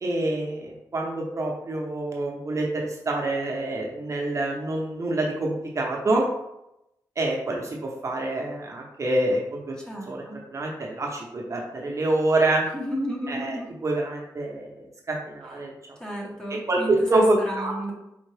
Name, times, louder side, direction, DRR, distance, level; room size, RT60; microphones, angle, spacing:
voice 1, 0.0-6.2 7.2-9.7 10.1-10.2 10.5-12.7 13.3-15.7 16.5-17.7, right 2 dB, 40° right, -1 dB, 0.8 m, -26 dB
voice 2, 9.8-10.4 12.7-13.7 16.0-17.9, equal, 10° left, -3 dB, 1.1 m, -33 dB
4.4 x 3.6 x 3.3 m, 0.86 s
wide cardioid pair, 120°, 8 cm